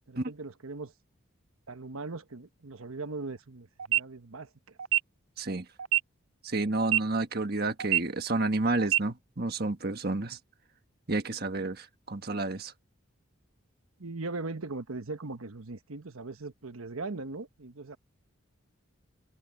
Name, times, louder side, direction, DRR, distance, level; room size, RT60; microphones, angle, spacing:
voice 1, 0.1-0.9 1.7-4.8 14.0-18.0, right 3 dB, 85° right, 1.2 m, -39 dB
sound 1, 3.8-4.0 4.8-5.0 5.8-6.0 6.8-7.0 7.8-8.0 8.8-9.0, right 12 dB, 70° right, 0.4 m, -25 dB
voice 2, 6.4-10.4 11.1-12.7, right 2 dB, 45° right, 1.5 m, -30 dB
head